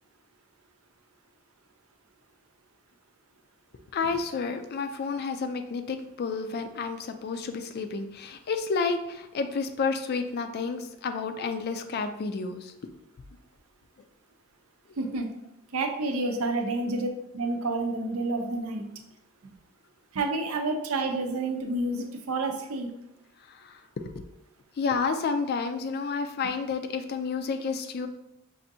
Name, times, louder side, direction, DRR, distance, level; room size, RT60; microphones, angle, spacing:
voice 1, 3.9-12.7 16.3-16.5 23.5-24.1 24.8-28.1, left 4 dB, 50° left, 8 dB, 0.3 m, -30 dB
voice 2, 15.0-15.3 15.7-18.8 20.1-22.9, right 2 dB, 80° right, 4 dB, 0.6 m, -29 dB
5.5 x 2.6 x 2.6 m, 0.84 s
head